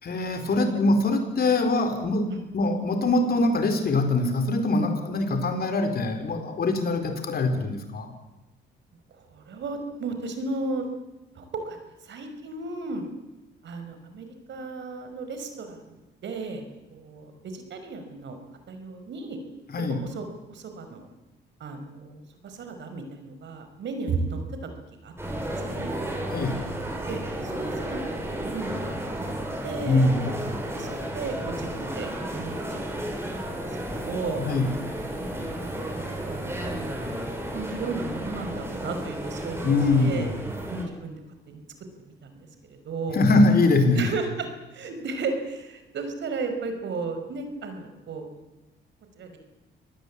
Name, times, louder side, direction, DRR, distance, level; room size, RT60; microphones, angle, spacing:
voice 1, 0.0-8.1 19.7-20.0 26.3-26.6 29.9-30.6 34.4-34.7 39.6-40.5 43.1-44.1, left 2 dB, 50° left, 7 dB, 4.6 m, -23 dB
voice 2, 9.1-10.9 11.4-11.8 12.0-13.0 13.6-16.6 16.9-18.4 18.7-19.4 20.0-21.1 21.6-24.4 25.0-25.1 25.6-25.9 27.1-29.2 29.6-30.1 30.7-32.8 33.4-33.6 33.9-34.5 35.2-35.6 36.0-37.0 37.5-40.3 40.7-41.2 41.5-41.6 42.1-42.5 42.8-43.2 44.0-48.3 49.2-49.4, right 3 dB, 65° right, 7 dB, 5.4 m, -34 dB
sound 1, 25.2-40.9, right 1 dB, 10° right, 7.5 m, -33 dB
25.5 x 19.0 x 8.6 m, 1.0 s
cardioid pair, 90°, 20 cm